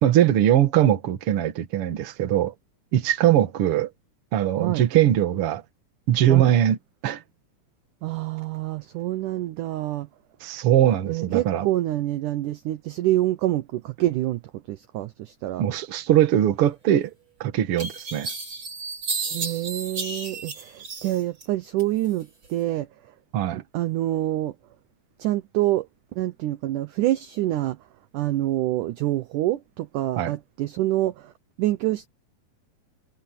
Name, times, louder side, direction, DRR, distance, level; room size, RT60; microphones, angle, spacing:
voice 1, 0.0-2.5 2.9-3.9 4.3-5.6 6.1-6.8 7.0-7.2 10.4-11.7 15.6-17.1 17.4-18.3 23.3-23.6 30.2-30.3, right 11 dB, 50° right, 1.8 m, -21 dB
voice 2, 8.0-10.1 11.1-15.7 19.3-23.1 23.5-24.5 25.2-27.8 28.1-31.3 31.6-32.1, right 15 dB, 75° right, 1.9 m, -26 dB
sound 1, 17.1-17.2 17.8-21.5 21.8-22.5, right 4 dB, 30° right, 4.3 m, -33 dB
omnidirectional pair, 4.5 m